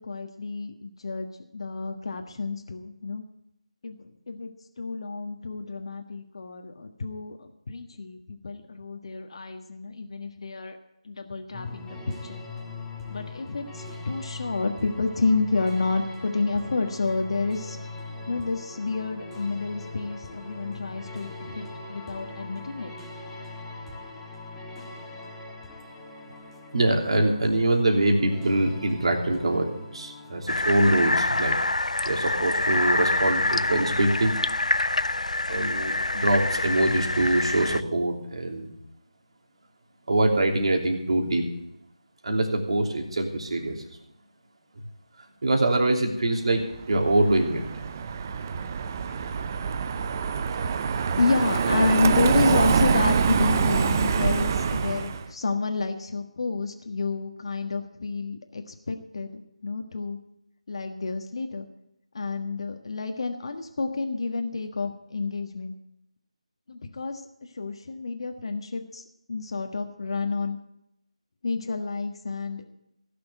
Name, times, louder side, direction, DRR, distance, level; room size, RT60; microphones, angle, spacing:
voice 1, 0.0-3.2 3.8-4.5 4.8-10.8 11.0-12.4 13.1-17.8 18.3-22.9 51.2-60.2 60.7-61.7 62.1-65.7 66.7-70.6 71.4-72.7, left 3 dB, 50° left, 5 dB, 1.5 m, -29 dB
sound 1, 11.5-30.8, left 2 dB, 5° left, 1.5 m, -41 dB
voice 2, 26.7-31.6 32.0-34.4 35.5-38.7 40.1-41.5 42.2-43.8 45.4-47.6, right 1 dB, 55° right, 2 dB, 3.0 m, -24 dB
sound 2, 30.5-37.8, left 2 dB, 85° left, 0.5 m, -26 dB
Car passing by, 46.7-55.3, right 6 dB, 25° right, 0.6 m, -25 dB
16.5 x 6.8 x 9.2 m, 0.82 s
figure-of-eight pair, 160°, 4 cm